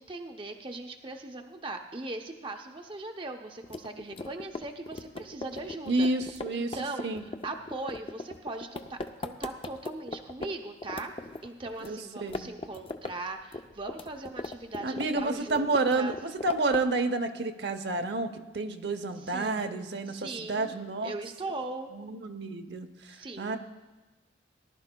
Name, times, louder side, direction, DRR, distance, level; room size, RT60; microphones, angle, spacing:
voice 1, 0.0-6.1 6.5-7.1 7.4-11.1 11.4-16.2 19.2-21.9 23.1-23.6, right 2 dB, 25° right, 4 dB, 0.6 m, -39 dB
sound 1, 3.6-10.5 10.8-11.9 12.2-13.1 13.4-15.3 15.5-17.0, left 2 dB, 30° left, 0.4 m, -39 dB
voice 2, 5.9-6.8 7.0-7.2 11.8-12.5 14.8-21.1 21.9-23.6, right 2 dB, 60° right, 7 dB, 0.7 m, -30 dB
19.0 x 11.5 x 2.2 m, 1.2 s
head